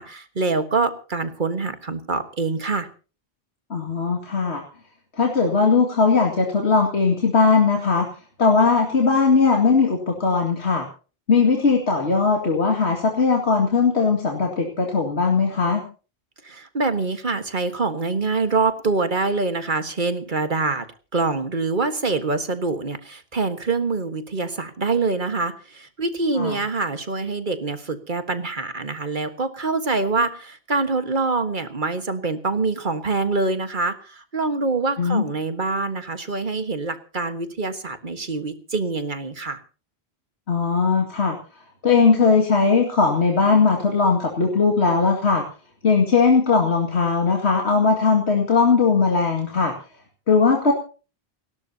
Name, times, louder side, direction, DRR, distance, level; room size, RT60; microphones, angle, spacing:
voice 1, 0.0-2.9 16.4-20.8 21.1-39.6, right 3 dB, 50° right, 9 dB, 1.7 m, -25 dB
voice 2, 3.7-4.6 5.2-8.1 8.4-10.9 11.3-15.8 26.4-26.6 35.0-35.2 40.5-41.4 41.8-45.4 45.8-49.7 50.3-50.7, left 4 dB, 90° left, 2 dB, 2.5 m, -19 dB
29.5 x 12.5 x 2.8 m, 0.36 s
omnidirectional pair, 1.1 m